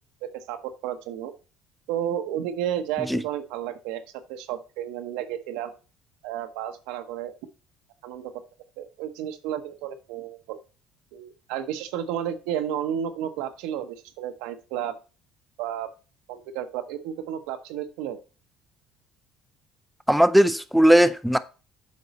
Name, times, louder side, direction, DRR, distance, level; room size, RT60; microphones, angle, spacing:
voice 1, 0.2-1.3 1.9-4.0 4.3-5.7 6.2-7.3 8.0-8.3 8.8-10.6 11.1-15.0 15.6-15.9 16.3-18.2, right 10 dB, 85° right, 1.0 m, -32 dB
voice 2, 20.1-21.4, equal, ahead, 0.5 m, -18 dB
8.5 x 5.3 x 4.2 m
supercardioid pair, 100°, 0 cm